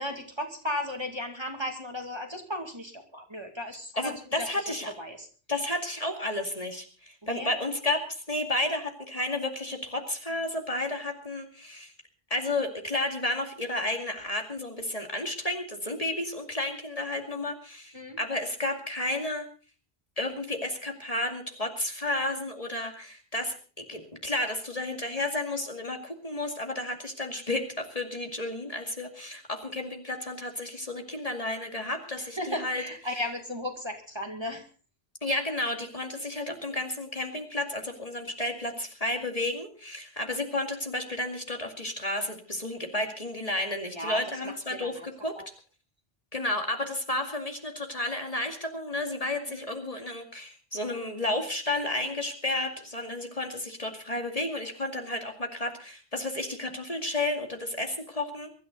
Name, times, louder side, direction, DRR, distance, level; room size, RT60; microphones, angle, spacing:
voice 1, 0.0-5.3 7.2-7.5 17.9-18.2 32.2-34.6 36.4-36.6 43.9-45.1 45.4-45.5 49.5-49.7, left 1 dB, 25° right, 3 dB, 2.3 m, -36 dB
voice 2, 3.9-4.9 5.5-11.9 12.3-19.5 20.2-32.8 35.2-45.4 46.3-58.5, left 2 dB, 35° left, 3 dB, 2.3 m, -32 dB
23.5 x 12.5 x 3.9 m, 0.37 s
omnidirectional pair, 1.1 m